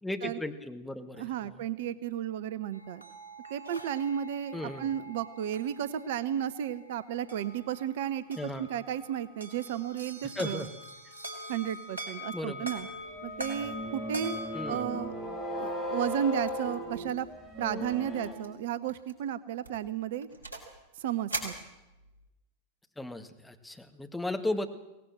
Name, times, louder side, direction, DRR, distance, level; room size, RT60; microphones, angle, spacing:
voice 1, 0.0-1.7 4.5-4.9 8.4-8.7 10.4-10.7 12.3-12.7 14.5-15.0 23.0-24.7, left 1 dB, 5° left, 6 dB, 1.9 m, -36 dB
voice 2, 1.2-3.0 3.5-10.6 11.5-12.9 13.2-14.4 14.6-15.1 15.6-17.3 17.6-20.3 21.0-21.5, right 10 dB, 55° right, 16 dB, 0.9 m, -33 dB
sound 1, 2.7-14.8, equal, 80° right, 3.3 m, -44 dB
sound 2, 13.1-18.3, equal, 15° right, 7.9 m, -37 dB
sound 3, 16.5-16.8 17.0-17.3 17.6-17.7 18.2-18.5 18.9-19.1 19.6-20.8 21.3-22.3, right 2 dB, 85° left, 5.7 m, -40 dB
23.0 x 18.0 x 7.6 m, 0.98 s
figure-of-eight pair, 90°, 0 cm